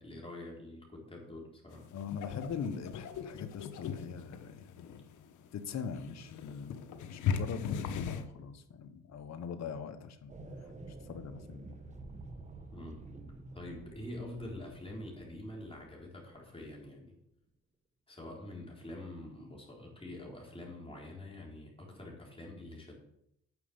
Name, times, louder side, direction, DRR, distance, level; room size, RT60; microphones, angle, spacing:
voice 1, 0.0-1.9 12.7-13.0 13.5-17.2 18.1-22.9, left 1 dB, 20° left, -2 dB, 4.0 m, -46 dB
sound 1, 1.7-8.3, left 7 dB, 80° left, 1.1 m, -39 dB
voice 2, 1.9-5.0 5.5-10.3 11.1-11.7, left 6 dB, 60° left, 8 dB, 1.3 m, -42 dB
sound 2, 10.3-16.5, right 2 dB, 25° right, 1.4 m, -50 dB
9.7 x 6.4 x 7.2 m, 0.78 s
cardioid pair, 90°, 30 cm